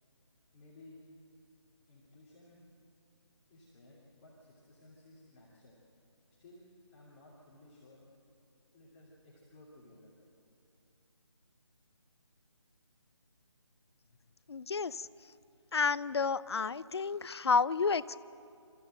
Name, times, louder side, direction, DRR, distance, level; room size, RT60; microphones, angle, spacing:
voice 1, 0.5-1.0 1.9-2.6 3.5-5.8 6.4-6.6 6.9-8.0 8.7-10.1, left 2 dB, 25° left, -6 dB, 2.8 m, -57 dB
voice 2, 14.5-15.1 15.7-18.2, left 5 dB, 60° left, 17 dB, 0.6 m, -30 dB
28.5 x 14.0 x 7.8 m, 2.6 s
figure-of-eight pair, 155°, 15 cm